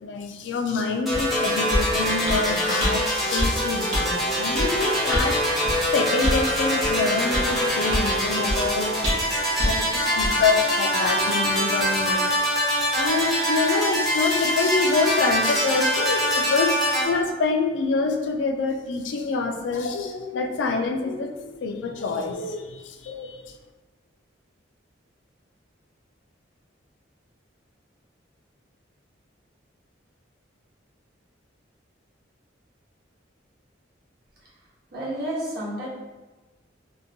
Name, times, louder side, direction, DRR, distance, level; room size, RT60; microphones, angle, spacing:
voice 1, 0.0-5.6 5.9-8.9 9.6-12.3 12.9-23.4, left 4 dB, 70° left, 5 dB, 0.3 m, -26 dB
sound 1, 1.1-17.1, equal, ahead, 0.5 m, -24 dB
sound 2, 1.1-1.3 1.7-1.9 2.3-2.4 2.8-2.9 3.4-3.5 3.9-4.1 4.6-4.7 5.1-5.3 5.6-5.8 6.2-6.4 6.8-6.9 7.3-7.5 7.9-8.1 8.5-8.6 9.0-9.3 9.6-9.7 10.2-10.3, equal, 80° right, 0.8 m, -25 dB
voice 2, 34.9-35.9, right 1 dB, 55° right, -7 dB, 0.9 m, -30 dB
2.8 x 2.1 x 2.6 m, 1.2 s
head